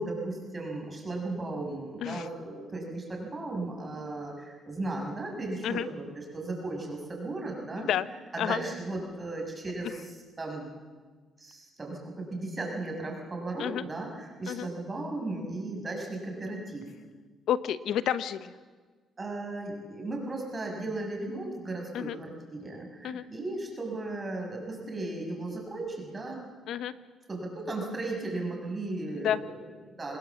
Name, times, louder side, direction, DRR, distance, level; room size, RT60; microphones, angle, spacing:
voice 1, 0.0-7.9 8.3-10.7 11.4-16.9 19.2-26.4 27.3-30.2, right 2 dB, 30° right, 1 dB, 6.4 m, -36 dB
voice 2, 17.5-18.5 21.9-22.2 23.0-23.2 26.7-26.9 29.1-29.4, left 10 dB, 75° left, 14 dB, 1.0 m, -30 dB
26.5 x 19.5 x 7.2 m, 1.5 s
cardioid pair, 90°, 0 cm